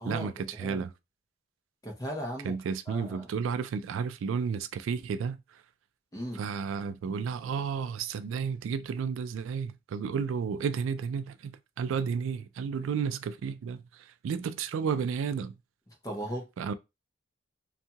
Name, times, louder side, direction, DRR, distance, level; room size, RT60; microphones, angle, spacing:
voice 1, 0.1-0.9 2.4-5.6 6.3-15.6 16.6-16.7, right 6 dB, 80° right, 0.3 m, -32 dB
voice 2, 0.6-0.9 1.8-2.5 2.9-3.3 6.1-6.4 16.0-16.5, equal, 20° left, 0.7 m, -37 dB
2.7 x 2.3 x 2.8 m
head